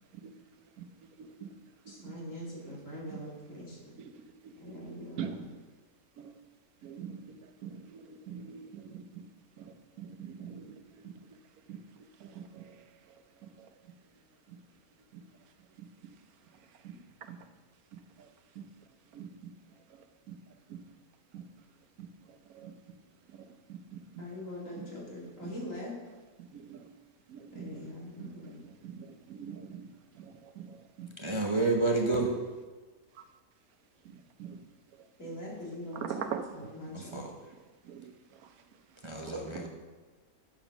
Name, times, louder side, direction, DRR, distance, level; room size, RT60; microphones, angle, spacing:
voice 1, 1.2-1.5 1.8-2.2 2.6-2.8 3.1-3.2 4.0-4.1 4.4-5.4 6.2-6.3 6.8-9.2 9.6-11.1 11.7-13.7 14.5-14.6 15.1-15.2 15.8-15.9 16.8-16.9 17.2-17.4 17.9-18.3 18.5-18.6 19.1-19.5 19.9-20.4 20.7-20.8 21.3-21.4 22.0-22.7 23.3-24.2 24.8-24.9 25.4-25.5 26.4-26.9 27.3-27.9 28.2-29.8 30.1-31.1 34.0-34.6 35.0-35.1 35.9-36.7 37.8-38.1 38.4-38.5, right 7 dB, 90° right, 8 dB, 1.2 m, -44 dB
voice 2, 1.9-3.8 4.5-5.5 24.2-26.0 27.5-28.6 35.2-36.3 36.5-37.3, left 1 dB, 65° left, -5 dB, 2.7 m, -42 dB
voice 3, 31.2-32.3 36.9-37.3 39.0-39.7, right 3 dB, 25° right, -1 dB, 0.7 m, -29 dB
7.3 x 7.1 x 5.9 m, 1.3 s
omnidirectional pair, 1.5 m